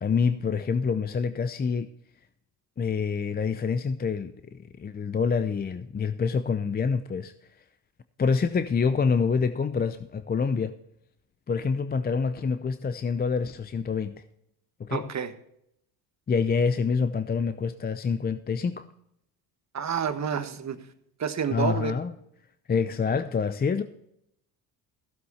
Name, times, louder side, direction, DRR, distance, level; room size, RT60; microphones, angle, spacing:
voice 1, 0.0-1.9 2.8-7.3 8.2-10.7 11.5-14.2 14.8-15.0 16.3-18.8 21.5-22.1 22.7-23.8, left 5 dB, 20° left, 0.6 m, -26 dB
voice 2, 14.9-15.3 19.7-20.8 21.2-21.9, right 7 dB, 35° right, 1.4 m, -29 dB
14.5 x 8.0 x 4.3 m
supercardioid pair, 80°, 45 cm